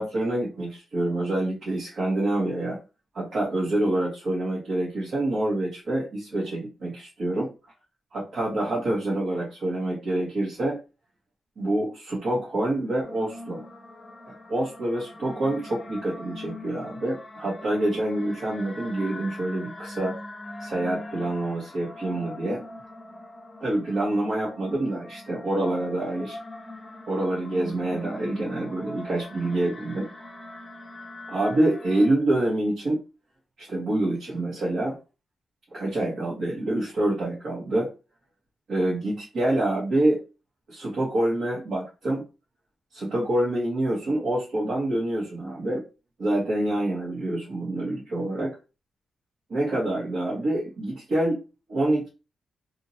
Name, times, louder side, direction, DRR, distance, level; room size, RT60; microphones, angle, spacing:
voice 1, 0.0-2.8 3.1-7.5 8.1-10.8 11.6-13.6 14.3-20.2 20.6-22.6 23.6-26.4 27.1-30.1 31.3-33.0 33.6-35.0 35.7-37.9 38.7-40.2 40.7-42.2 42.9-45.8 46.2-48.6 49.5-51.4 51.7-52.1, right 1 dB, 65° right, -6 dB, 1.3 m, -26 dB
sound 1, 13.0-32.1, left 2 dB, 30° left, 0.6 m, -42 dB
2.8 x 2.7 x 2.7 m, 0.31 s
cardioid pair, 75°, 0 cm